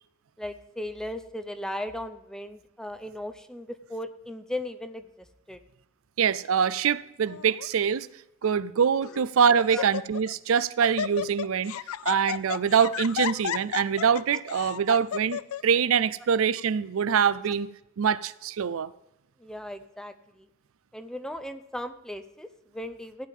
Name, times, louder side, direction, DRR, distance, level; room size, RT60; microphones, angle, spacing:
voice 1, 0.4-5.6 9.7-9.8 17.5-17.6 19.4-20.5 20.9-23.3, left 1 dB, 5° left, 0.6 m, -37 dB
voice 2, 6.2-8.1 8.4-11.7 12.0-17.7 18.0-18.9, right 7 dB, 75° right, 0.4 m, -24 dB
Laughter, 7.3-7.7 8.4-8.5 9.0-9.3 9.6-10.3 10.6-15.6, left 9 dB, 85° left, 0.4 m, -33 dB
15.0 x 9.3 x 3.6 m
head